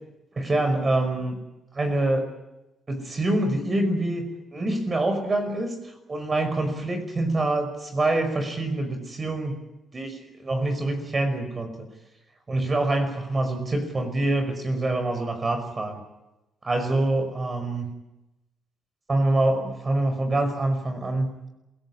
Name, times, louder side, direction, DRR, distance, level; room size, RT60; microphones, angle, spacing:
voice 1, 0.4-1.4 1.7-2.3 2.9-9.5 9.9-11.9 12.5-16.0 16.6-17.9 19.1-21.3, right 2 dB, 30° right, 7 dB, 5.3 m, -25 dB
27.5 x 17.0 x 9.8 m, 0.96 s
cardioid pair, 90°, 0 cm